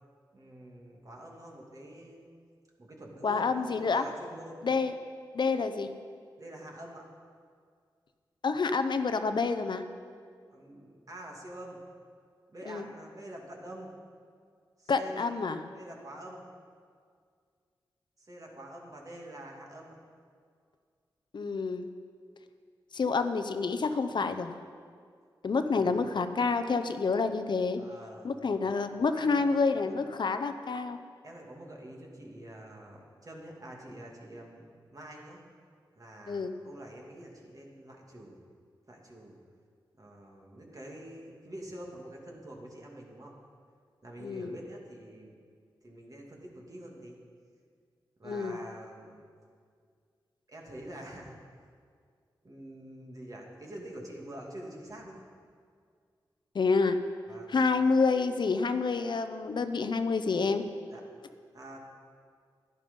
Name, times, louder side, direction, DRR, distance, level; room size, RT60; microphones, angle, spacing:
voice 1, 0.3-2.2 2.8-4.6 6.4-7.0 10.5-11.8 12.5-13.9 14.8-15.3 15.7-16.5 18.2-20.0 25.5-26.0 27.8-28.8 29.1-29.5 29.7-29.9 31.2-34.6 34.9-35.4 36.0-38.4 38.9-39.3 40.0-43.3 44.0-45.3 45.8-47.2 48.2-49.3 50.5-51.4 52.4-55.2 57.3-57.6 60.9-61.0 61.5-61.8, right 1 dB, 45° right, -1 dB, 2.6 m, -46 dB
voice 2, 3.2-4.1 4.6-4.9 5.3-5.9 8.4-9.8 12.7-12.9 14.9-15.6 21.3-21.9 22.9-24.5 25.4-27.8 28.2-31.0 36.3-36.6 44.2-44.6 48.2-48.6 56.5-57.0 57.5-60.6, left 4 dB, 60° left, 9 dB, 0.7 m, -28 dB
11.0 x 11.0 x 5.4 m, 2.1 s
cardioid pair, 50°, 9 cm